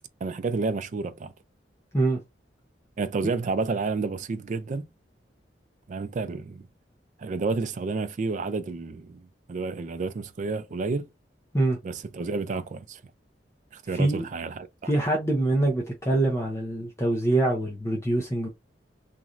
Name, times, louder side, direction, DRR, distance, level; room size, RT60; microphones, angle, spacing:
voice 1, 0.2-1.3 3.0-4.9 5.9-6.7 7.2-11.1 11.8-13.0 13.7-14.9, right 4 dB, 45° right, 0.3 m, -30 dB
voice 2, 14.9-18.5, right 2 dB, 15° left, 0.6 m, -24 dB
3.0 x 2.5 x 2.4 m
head